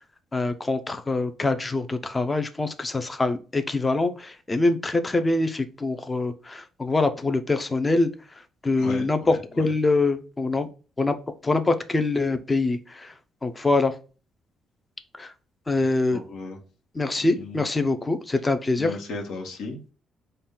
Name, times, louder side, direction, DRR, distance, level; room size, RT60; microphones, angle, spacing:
voice 1, 0.3-8.1 8.6-10.7 11.0-11.2 11.4-13.1 13.4-14.0 15.2-15.3 15.7-16.2 16.9-19.0, left 2 dB, 20° left, 9 dB, 0.5 m, -24 dB
voice 2, 16.1-16.6 17.4-17.6 18.8-19.9, left 3 dB, 80° left, 1 dB, 1.1 m, -35 dB
4.0 x 2.2 x 3.7 m, 0.35 s
cardioid pair, 90°, 0 cm